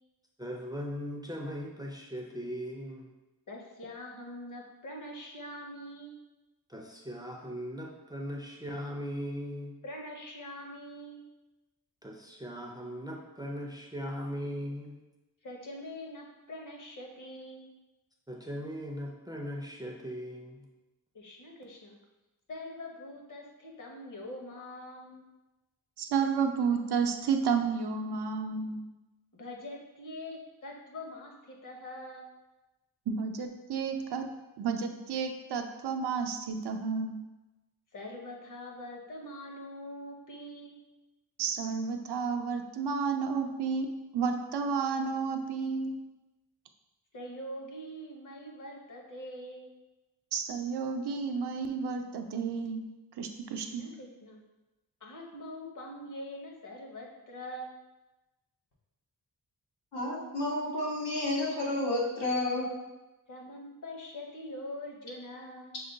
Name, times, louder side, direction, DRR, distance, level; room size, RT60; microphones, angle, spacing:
voice 1, 0.4-3.1 6.7-9.8 12.0-15.0 18.3-20.6, equal, 10° right, -1 dB, 0.4 m, -39 dB
voice 2, 3.5-6.2 9.8-11.2 15.4-17.7 21.1-22.0 22.5-25.3 29.3-32.3 37.9-40.8 47.1-49.7 53.5-54.4 55.0-57.7 63.3-65.8, left 1 dB, 50° left, 0 dB, 0.9 m, -44 dB
voice 3, 26.0-28.8 33.1-34.3 34.6-37.2 41.4-43.9 44.1-45.9 50.3-52.8 53.2-53.9, right 5 dB, 85° right, 5 dB, 0.6 m, -31 dB
voice 4, 59.9-62.7, left 1 dB, 85° left, -4 dB, 1.4 m, -31 dB
6.1 x 2.2 x 3.8 m, 1.0 s
wide cardioid pair, 160°, 39 cm